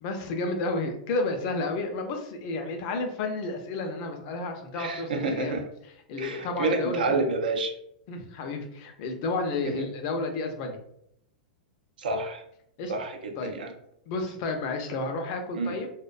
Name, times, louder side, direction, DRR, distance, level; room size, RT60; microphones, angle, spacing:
voice 1, 0.0-5.5 6.1-7.1 8.1-10.8 12.8-12.9 13.4-13.5 14.1-16.0, left 3 dB, 50° left, 4 dB, 0.5 m, -31 dB
voice 2, 4.7-5.6 6.2-7.7 12.0-12.4 12.9-13.7 15.5-15.8, right 3 dB, 90° right, 4 dB, 0.4 m, -29 dB
2.5 x 2.1 x 2.4 m, 0.75 s
hypercardioid pair, 125°, 5 cm